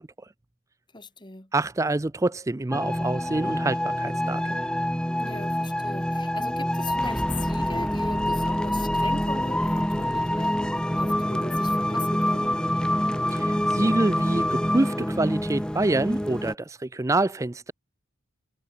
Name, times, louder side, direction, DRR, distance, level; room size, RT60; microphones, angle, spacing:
voice 1, 0.9-1.5 5.2-12.5, left 3 dB, 20° left, 2.5 m, -39 dB
voice 2, 1.5-4.6 13.3-17.7, right 2 dB, 15° right, 0.4 m, -26 dB
sound 1, 2.7-16.5, equal, 5° left, 1.7 m, -26 dB
head